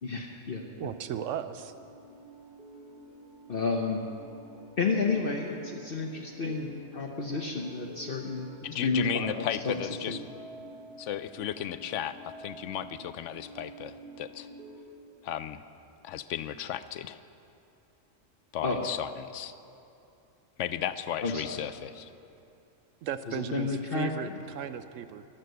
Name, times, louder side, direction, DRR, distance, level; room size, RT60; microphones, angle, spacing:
voice 1, 0.0-0.9 3.5-4.0 4.8-8.5 8.8-9.8 10.1-10.2 18.6-18.9 21.2-21.7 23.3-24.3, left 4 dB, 50° left, 1 dB, 1.1 m, -31 dB
voice 2, 0.8-1.7 23.0-25.3, right 9 dB, 80° right, 11 dB, 0.9 m, -36 dB
sound 1, 1.3-14.8, right 2 dB, 50° right, 2.8 m, -49 dB
voice 3, 8.6-10.2 11.0-14.5 15.2-15.6 16.0-17.2 18.5-19.6 20.6-22.1, left 10 dB, 75° left, 13 dB, 0.9 m, -35 dB
14.0 x 12.0 x 6.7 m, 2.6 s
omnidirectional pair, 1.3 m